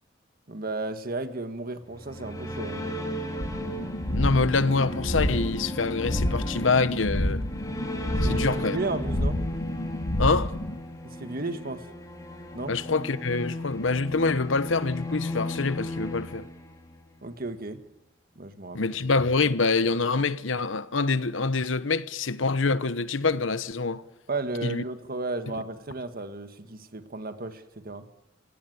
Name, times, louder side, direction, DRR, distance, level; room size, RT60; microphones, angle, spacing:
voice 1, 0.5-3.0 8.2-8.4 8.7-9.4 11.0-11.9 12.5-12.7 17.2-17.8 18.3-18.9 24.3-28.0, right 2 dB, 50° right, 1.6 m, -34 dB
sound 1, 1.8-17.1, left 1 dB, 20° left, 3.9 m, -36 dB
sound 2, 3.4-10.8, left 1 dB, 55° left, 1.8 m, -29 dB
voice 2, 4.1-7.4 8.2-8.8 10.2-10.5 12.7-16.5 18.7-24.0 24.6-24.8, left 4 dB, 85° left, 1.0 m, -25 dB
26.0 x 17.0 x 9.5 m
head